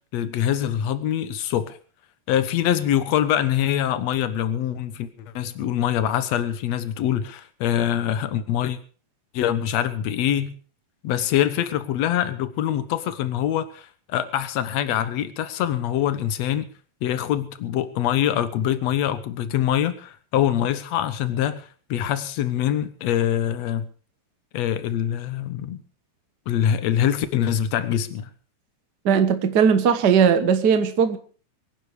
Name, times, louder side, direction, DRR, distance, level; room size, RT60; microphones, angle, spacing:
voice 1, 0.1-1.8 2.3-8.8 9.3-10.5 11.0-16.7 17.0-23.9 24.5-25.8 26.5-28.3, left 10 dB, 60° left, 1.9 m, -24 dB
voice 2, 29.0-31.2, right 7 dB, 85° right, 0.9 m, -18 dB
24.0 x 10.0 x 4.9 m
omnidirectional pair, 4.1 m